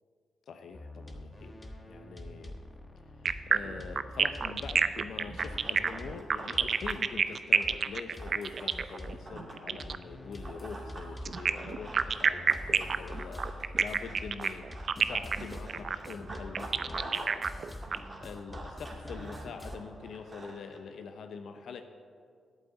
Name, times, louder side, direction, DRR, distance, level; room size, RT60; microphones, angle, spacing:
voice 1, 0.5-2.5 3.5-17.4 18.0-21.8, left 5 dB, 75° left, 7 dB, 0.7 m, -44 dB
sound 1, 0.7-7.4 7.6-19.8, left 1 dB, 20° left, 1.3 m, -45 dB
sound 2, 3.3-10.0 11.3-18.0, right 6 dB, 60° right, 0.5 m, -28 dB
Run, 5.4-9.7 10.4-17.4 17.6-20.8, right 2 dB, 35° right, 2.5 m, -47 dB
8.3 x 8.2 x 8.1 m, 2.1 s
cardioid pair, 60°, 0 cm